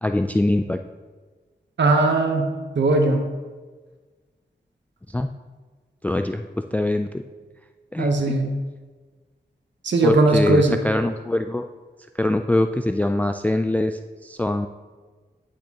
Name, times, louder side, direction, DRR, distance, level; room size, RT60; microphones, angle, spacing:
voice 1, 0.0-0.8 5.1-5.3 6.0-7.2 7.9-8.3 10.0-11.7 12.2-14.7, left 1 dB, 10° left, 7 dB, 0.3 m, -23 dB
voice 2, 1.8-2.5 2.8-3.2 8.0-8.6 9.8-10.8, right 2 dB, 75° right, 3 dB, 1.0 m, -19 dB
10.0 x 6.4 x 2.9 m, 1.4 s
cardioid pair, 55°, 19 cm